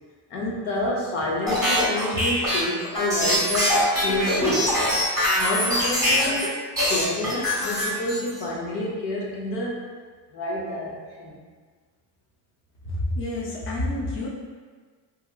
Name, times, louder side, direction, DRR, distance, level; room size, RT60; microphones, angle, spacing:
voice 1, 0.3-4.9 5.4-6.5 6.8-9.9 10.3-11.3, left 1 dB, 75° left, -3 dB, 0.8 m, -29 dB
sound 1, 1.5-6.5 6.8-8.4, equal, 10° right, 0.9 m, -23 dB
voice 2, 12.9-14.3, left 1 dB, 30° left, -4 dB, 0.5 m, -28 dB
2.9 x 2.6 x 2.3 m, 1.5 s
cardioid pair, 130°, 44 cm